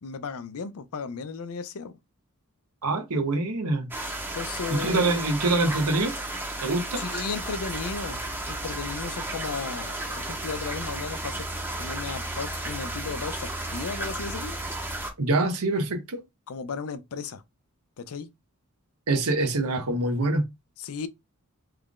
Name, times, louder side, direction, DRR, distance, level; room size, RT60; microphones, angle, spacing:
voice 1, 0.0-2.0 4.3-5.2 7.0-11.5 11.8-14.6 16.5-17.4 18.0-18.3 20.8-21.1, left 5 dB, 70° left, 0.5 m, -35 dB
voice 2, 2.8-3.9 4.7-6.1 6.6-7.0 15.2-16.2 19.1-20.5, right 2 dB, 85° right, 0.9 m, -25 dB
sound 1, 3.9-15.1, right 1 dB, 10° right, 0.7 m, -34 dB
sound 2, 7.3-15.0, right 1 dB, 55° right, 1.0 m, -42 dB
3.2 x 2.4 x 3.6 m
head